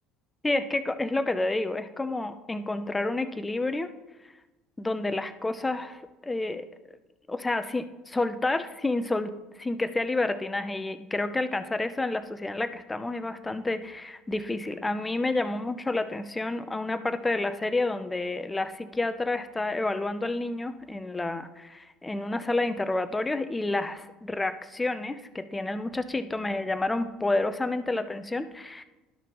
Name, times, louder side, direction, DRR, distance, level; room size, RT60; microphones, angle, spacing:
voice 1, 0.4-3.9 4.8-6.7 7.3-9.3 9.6-28.8, left 2 dB, 15° left, 11 dB, 0.7 m, -29 dB
12.0 x 5.8 x 3.1 m, 1.1 s
hypercardioid pair, 65°, 0 cm